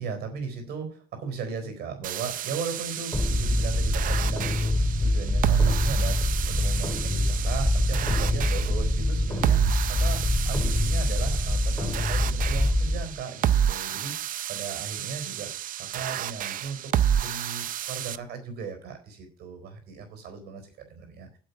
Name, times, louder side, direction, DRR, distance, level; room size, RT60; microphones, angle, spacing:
voice 1, 0.0-15.5 15.8-21.4, right 5 dB, 70° right, 6 dB, 4.2 m, -37 dB
sound 1, 2.0-18.2, right 9 dB, 55° right, 0.6 m, -30 dB
sound 2, 3.1-13.0, left 1 dB, 15° left, 2.3 m, -25 dB
8.9 x 7.7 x 7.0 m, 0.42 s
cardioid pair, 110°, 17 cm